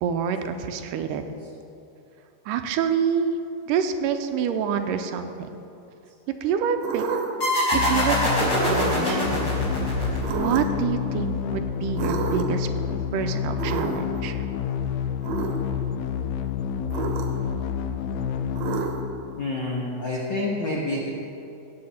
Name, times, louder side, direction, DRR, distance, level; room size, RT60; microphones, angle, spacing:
voice 1, 0.0-1.2 2.5-3.3 3.7-5.5 6.4-7.0 7.7-9.5 10.3-12.7 13.1-14.4, right 7 dB, 85° right, 8 dB, 2.2 m, -27 dB
sound 1, 6.8-7.5 8.5-9.1 10.2-10.8 12.0-12.6 13.6-14.2 15.2-15.6 16.9-17.5 18.6-19.2, right 6 dB, 65° right, 1.9 m, -30 dB
sound 2, 7.4-10.7, equal, 35° left, 3.4 m, -24 dB
sound 3, 7.7-19.6, left 8 dB, 80° left, 1.9 m, -29 dB
voice 2, 19.4-21.1, left 2 dB, 65° left, -4 dB, 1.1 m, -28 dB
15.5 x 8.5 x 4.2 m, 2.8 s
omnidirectional pair, 3.8 m